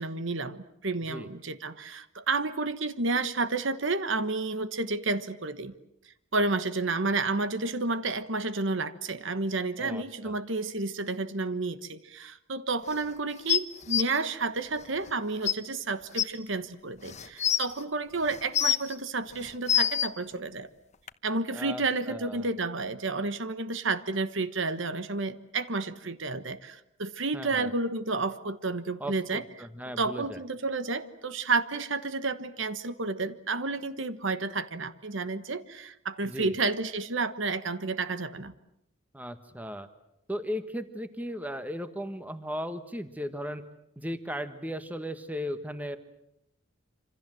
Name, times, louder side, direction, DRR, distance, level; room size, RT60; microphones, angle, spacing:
voice 1, 0.0-5.7 6.3-20.7 21.2-29.4 30.0-38.5, right 3 dB, 60° right, 12 dB, 1.3 m, -31 dB
voice 2, 9.8-10.4 21.5-22.5 27.3-27.7 29.0-30.4 36.2-36.6 39.1-39.9 40.3-43.6 44.0-46.0, equal, 5° right, 10 dB, 1.4 m, -36 dB
sound 1, 13.5-14.0 15.1-15.2 15.4-15.5 16.2-16.3 17.0-17.7 18.3-18.9 19.4-20.1 21.1-21.2, left 10 dB, 35° left, 1.1 m, -25 dB
27.0 x 26.5 x 7.7 m, 0.81 s
head